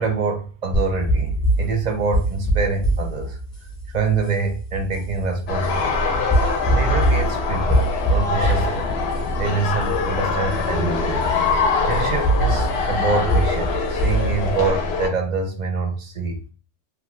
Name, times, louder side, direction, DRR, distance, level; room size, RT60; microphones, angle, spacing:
voice 1, 0.0-3.4 3.9-6.2 6.7-8.9 9.4-11.3 11.9-16.5, right 4 dB, 50° right, 4 dB, 0.6 m, -25 dB
sound 1, 0.7-14.7, right 1 dB, 20° left, 0.5 m, -24 dB
sound 2, 5.5-15.1, left 4 dB, 65° left, 0.8 m, -23 dB
2.9 x 2.2 x 3.0 m, 0.37 s
omnidirectional pair, 1.3 m